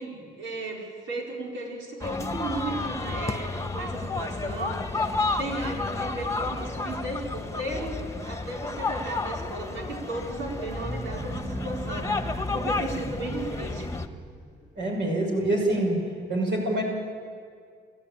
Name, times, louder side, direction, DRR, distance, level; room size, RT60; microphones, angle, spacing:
voice 1, 0.0-13.9, right 2 dB, 80° right, -2 dB, 5.2 m, -35 dB
sound 1, 2.0-14.1, left 3 dB, 15° left, 1.4 m, -31 dB
sound 2, 10.3-14.7, right 1 dB, 15° right, 3.5 m, -37 dB
voice 2, 14.8-16.0 16.3-16.8, right 1 dB, 65° right, -1 dB, 6.4 m, -25 dB
29.0 x 12.5 x 8.9 m, 2.2 s
cardioid pair, 90°, 20 cm